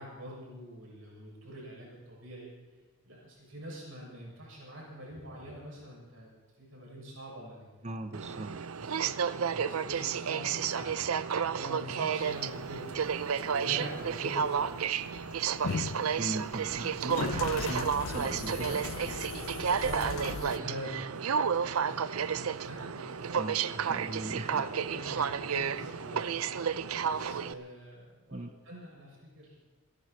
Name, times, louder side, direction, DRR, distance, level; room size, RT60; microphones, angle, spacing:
voice 1, 0.0-2.5 3.0-6.3 6.6-7.9 8.7-14.9 19.3-23.4 23.8-24.0 24.7-26.2 26.5-29.5, equal, 65° right, -3 dB, 7.3 m, -44 dB
voice 2, 7.8-8.5 9.6-9.7 16.2-18.8 23.4-24.7 28.3-28.5, right 2 dB, 30° right, 8 dB, 0.8 m, -39 dB
Aircraft, 8.1-27.5, right 7 dB, 85° right, 0.5 m, -32 dB
sound 1, 12.2-20.6, left 5 dB, 65° left, 0.5 m, -39 dB
28.0 x 11.0 x 4.5 m, 1.3 s
head